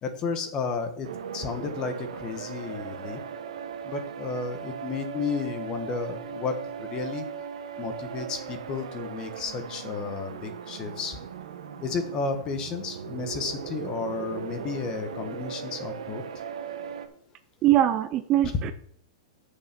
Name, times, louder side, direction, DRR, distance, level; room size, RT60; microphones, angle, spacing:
voice 1, 0.0-1.1 1.3-3.2 3.8-7.2 7.8-11.2 11.8-16.2, left 4 dB, 20° left, 8 dB, 1.2 m, -32 dB
sound 1, 1.0-17.1, right 7 dB, 85° right, 1.3 m, -38 dB
voice 2, 17.6-18.7, right 13 dB, 25° right, 11 dB, 0.4 m, -22 dB
8.5 x 6.6 x 5.9 m, 0.66 s
supercardioid pair, 165°, 3 cm